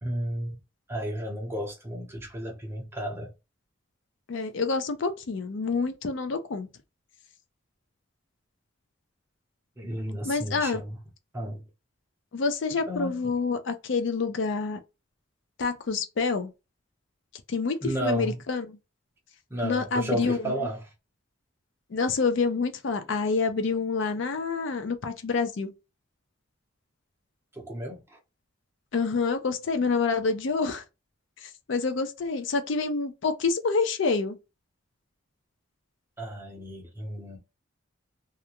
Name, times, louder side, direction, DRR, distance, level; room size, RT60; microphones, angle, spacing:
voice 1, 0.0-0.6 0.9-3.3 9.8-11.0 11.3-11.6 12.7-13.3 17.8-18.4 19.5-20.9 27.5-28.2 36.2-37.4, equal, 10° right, 0.7 m, -33 dB
voice 2, 4.3-6.7 10.2-10.8 12.3-14.8 15.6-16.5 17.5-18.8 19.6-20.6 21.9-25.7 28.9-30.8 31.4-34.4, left 4 dB, 65° left, 0.4 m, -27 dB
2.4 x 2.2 x 2.8 m
head